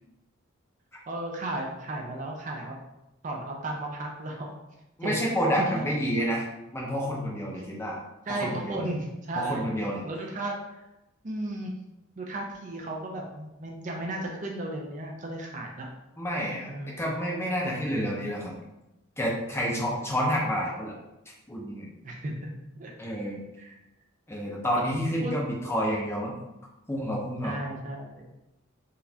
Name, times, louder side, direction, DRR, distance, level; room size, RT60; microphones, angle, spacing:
voice 1, 1.1-2.7 3.2-4.5 5.0-5.2 5.6-5.8 8.3-9.7 10.0-10.8 11.2-11.7 12.2-15.9 16.7-17.0 19.7-20.0 22.0-22.9 23.6-23.7 25.2-25.3 27.4-28.3, right 1 dB, 35° right, 0 dB, 0.4 m, -34 dB
voice 2, 5.0-6.5 6.7-8.0 8.3-8.9 9.3-10.0 16.2-18.6 19.2-20.9 21.5-21.9 23.0-23.4 24.3-26.3 26.9-27.6, equal, 10° left, -3 dB, 0.5 m, -29 dB
3.9 x 2.4 x 2.7 m, 0.93 s
head